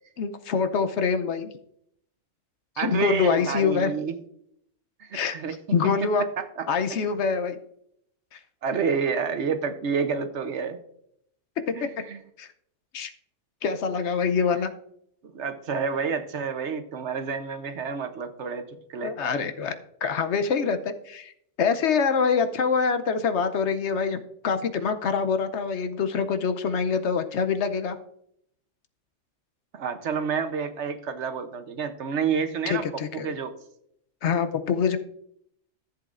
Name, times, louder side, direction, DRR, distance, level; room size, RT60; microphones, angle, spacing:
voice 1, 0.2-1.5 2.8-3.9 5.1-5.4 5.7-6.3 6.7-7.6 8.3-8.4 11.7-11.8 12.4-12.5 12.9-13.1 13.6-14.7 19.0-19.8 20.0-28.0 32.7-33.3 34.2-35.0, left 5 dB, 70° left, 10 dB, 0.9 m, -25 dB
voice 2, 2.8-4.1 5.0-5.5 6.4-6.7 8.6-10.8 11.7-12.2 15.3-19.1 29.7-33.5, right 6 dB, 65° right, 9 dB, 1.1 m, -29 dB
14.0 x 7.6 x 2.5 m, 0.72 s
omnidirectional pair, 1.3 m